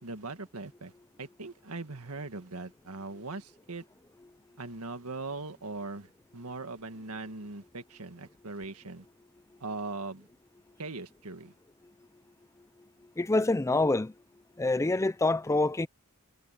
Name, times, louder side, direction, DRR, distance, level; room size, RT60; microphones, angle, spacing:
voice 1, 0.0-0.9 1.2-3.8 4.6-9.1 9.6-10.3 10.8-11.5, right 3 dB, 85° right, 1.9 m, -40 dB
voice 2, 13.2-14.1 14.6-15.9, left 2 dB, 15° left, 0.4 m, -26 dB
head